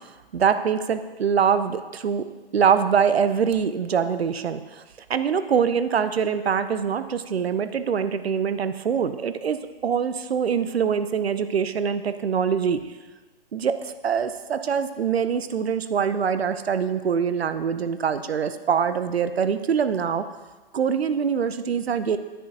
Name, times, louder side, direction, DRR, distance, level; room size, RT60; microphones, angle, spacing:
voice 1, 0.3-2.2 2.5-4.8 5.1-12.8 13.5-20.2 20.7-22.2, right 7 dB, 80° right, 11 dB, 0.6 m, -24 dB
9.9 x 8.0 x 2.7 m, 1.2 s
figure-of-eight pair, 125°, 31 cm